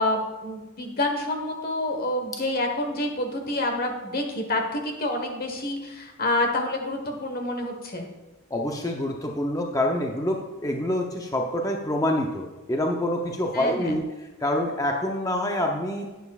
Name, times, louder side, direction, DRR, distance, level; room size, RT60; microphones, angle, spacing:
voice 1, 0.0-8.1 13.5-14.0, left 1 dB, 45° left, 4 dB, 1.3 m, -28 dB
voice 2, 8.5-14.0 14.4-16.0, left 1 dB, 15° left, 2 dB, 0.6 m, -26 dB
11.0 x 9.3 x 2.4 m, 1.1 s
head